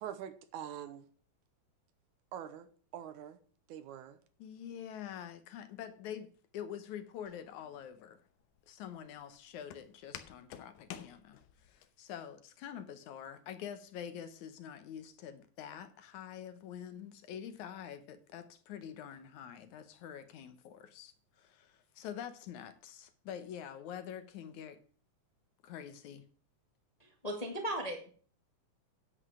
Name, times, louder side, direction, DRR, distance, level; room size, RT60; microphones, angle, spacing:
voice 1, 0.0-1.1 2.3-3.4 3.7-4.2, right 10 dB, 80° right, 2.3 m, -44 dB
voice 2, 4.4-8.2 8.7-24.8 25.6-26.2, left 9 dB, 70° left, 2.3 m, -46 dB
Walk footsteps, 7.3-11.9, left 10 dB, 90° left, 2.4 m, -51 dB
voice 3, 27.0-28.1, right 1 dB, 25° left, 0.9 m, -37 dB
10.0 x 8.0 x 4.8 m
omnidirectional pair, 3.6 m